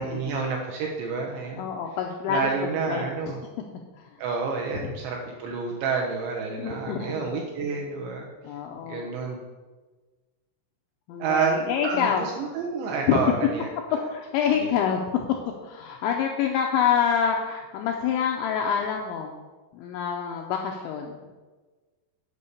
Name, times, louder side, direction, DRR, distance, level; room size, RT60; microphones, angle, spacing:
voice 1, 0.0-1.7 2.3-3.4 4.2-8.3 8.8-9.4 11.2-14.0 14.6-14.7, right 5 dB, 80° right, 0 dB, 2.6 m, -29 dB
voice 2, 1.6-2.5 2.9-3.1 4.0-4.1 6.5-7.2 8.4-9.1 11.1-12.2 13.1-13.4 14.1-15.0 15.6-19.3 19.7-21.1, left 8 dB, 85° left, 2 dB, 2.6 m, -26 dB
8.4 x 5.5 x 6.6 m, 1.3 s
omnidirectional pair, 6.0 m